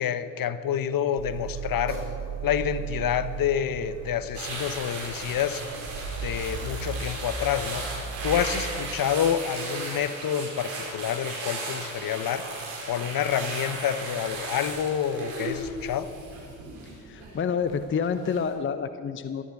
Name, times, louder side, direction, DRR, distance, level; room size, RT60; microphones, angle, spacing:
voice 1, 0.0-2.0 2.4-5.6 6.2-7.8 8.2-12.4 12.9-16.1, left 9 dB, 45° left, 13 dB, 1.0 m, -28 dB
Car, 1.2-8.4, right 5 dB, 40° right, 4.6 m, -36 dB
sound 1, 4.3-17.7 18.0-18.4, right 3 dB, 70° right, 5.1 m, -36 dB
voice 2, 17.1-19.4, left 6 dB, 25° left, 11 dB, 0.7 m, -28 dB
18.0 x 12.5 x 6.0 m, 2.2 s
hypercardioid pair, 65°, 49 cm